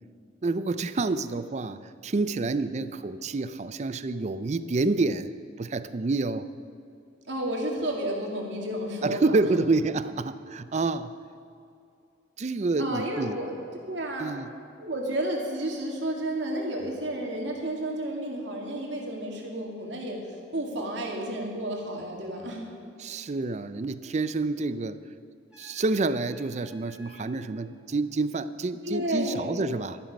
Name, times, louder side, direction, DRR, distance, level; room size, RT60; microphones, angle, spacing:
voice 1, 0.4-5.3 5.6-6.5 9.0-11.1 12.4-13.4 14.2-14.5 23.0-25.0 25.6-30.0, right 3 dB, 40° right, 13 dB, 0.4 m, -28 dB
voice 2, 7.3-9.6 12.8-13.5 13.8-14.3 14.8-20.2 20.5-22.7 28.8-29.5, right 1 dB, 80° right, 0 dB, 2.3 m, -31 dB
Trumpet, 25.5-27.5, left 1 dB, 5° right, 3.5 m, -54 dB
12.5 x 11.0 x 5.4 m, 2.5 s
head